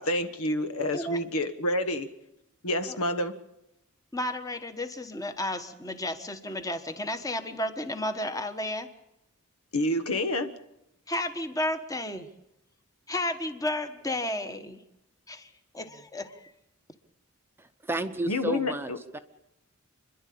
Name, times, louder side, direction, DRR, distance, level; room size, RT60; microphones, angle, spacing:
voice 1, 0.0-2.1 2.6-3.4 9.7-10.5 18.3-19.0, left 1 dB, 80° left, 9 dB, 1.4 m, -28 dB
voice 2, 4.1-8.9 11.1-12.3 13.1-14.8 15.3-16.5, left 1 dB, 15° left, 8 dB, 1.3 m, -32 dB
voice 3, 17.6-19.2, right 1 dB, 10° right, 7 dB, 0.8 m, -33 dB
29.0 x 11.0 x 8.6 m, 0.87 s
head